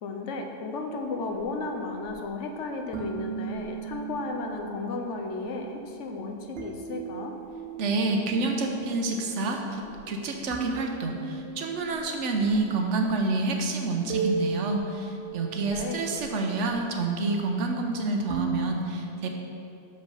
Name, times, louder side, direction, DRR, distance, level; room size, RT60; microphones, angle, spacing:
voice 1, 0.0-7.3 15.7-16.1, left 3 dB, 85° left, 3 dB, 1.1 m, -34 dB
sound 1, 0.9-18.7, right 4 dB, 55° right, 1.0 m, -38 dB
voice 2, 7.8-19.3, right 3 dB, 85° right, 3 dB, 1.1 m, -28 dB
6.1 x 5.3 x 5.6 m, 2.6 s
omnidirectional pair, 1.2 m